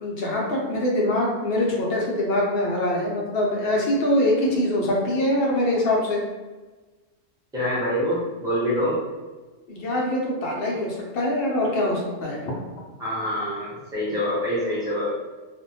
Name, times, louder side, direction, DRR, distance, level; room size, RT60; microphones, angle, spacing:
voice 1, 0.0-6.2 9.7-12.4, left 1 dB, 60° left, -2 dB, 0.6 m, -23 dB
voice 2, 7.5-9.0 13.0-15.1, equal, 5° right, -9 dB, 0.6 m, -25 dB
2.6 x 2.1 x 2.7 m, 1.3 s
omnidirectional pair, 1.4 m